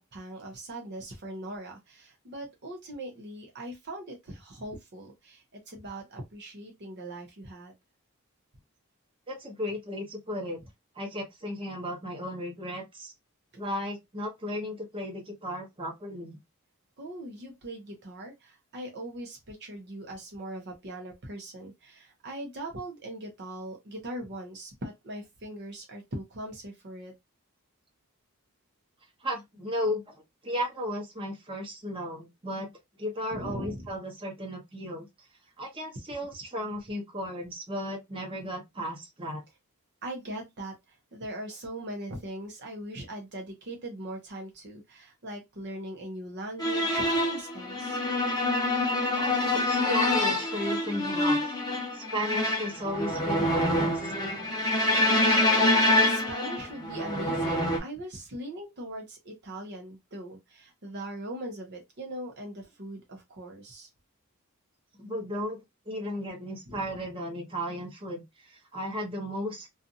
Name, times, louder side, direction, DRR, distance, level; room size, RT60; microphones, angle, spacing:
voice 1, 0.1-7.7 17.0-27.1 33.3-33.9 40.0-40.7 41.1-48.0 55.1-55.2 56.0-63.9 66.7-66.8, right 1 dB, 50° right, 0.7 m, -40 dB
voice 2, 9.3-10.6 11.0-13.1 13.6-16.4 29.2-30.1 30.4-32.7 33.0-35.1 35.6-39.4 49.1-51.6 51.9-54.1 65.0-65.6 65.9-69.7, equal, 25° right, 0.8 m, -35 dB
sound 1, 46.6-57.8, left 1 dB, 20° left, 0.7 m, -26 dB
2.6 x 2.4 x 2.6 m
head